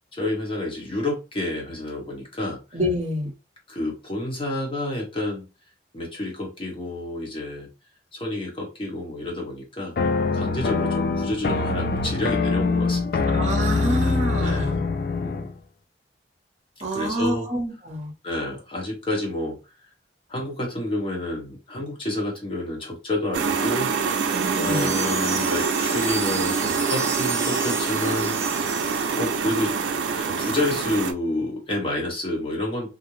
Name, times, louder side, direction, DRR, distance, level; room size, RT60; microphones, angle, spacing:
voice 1, 0.1-2.8 3.7-5.5 5.9-7.7 8.1-10.0 10.3-13.3 14.4-14.8 15.2-15.5 16.9-17.5 18.2-19.6 20.3-23.9 24.6-28.4 29.1-29.8 30.2-33.0, left 1 dB, 30° left, 1.0 m, -29 dB
voice 2, 2.7-3.3 13.3-14.8 16.8-18.1 24.3-24.9, equal, 40° right, 0.7 m, -27 dB
sound 1, 10.0-15.5, left 3 dB, 55° left, 0.3 m, -24 dB
sound 2, 23.3-31.1, right 5 dB, 85° right, 0.4 m, -25 dB
sound 3, 24.1-29.5, right 3 dB, 15° right, 0.4 m, -33 dB
2.5 x 2.0 x 3.0 m
head